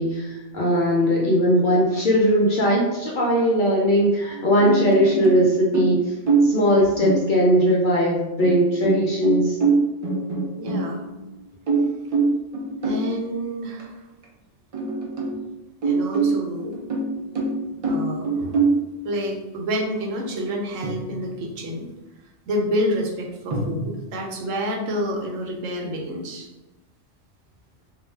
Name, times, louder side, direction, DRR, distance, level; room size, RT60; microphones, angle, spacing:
voice 1, 0.0-6.1 6.4-9.6, equal, 60° left, -4 dB, 0.5 m, -19 dB
sound 1, 4.3-5.5 5.7-6.7 7.0-7.7 8.4-11.2 11.7-13.1 13.8-13.9 14.2-14.3 14.7-15.4 15.8-18.9 20.8-21.6 23.5-23.8, right 4 dB, 55° right, 0.3 m, -24 dB
voice 2, 10.6-11.0 12.8-13.9 15.8-16.8 17.8-18.7 19.0-21.9 22.5-26.5, equal, 90° right, 1 dB, 1.0 m, -28 dB
2.4 x 2.1 x 3.2 m, 1.0 s
omnidirectional pair, 1.3 m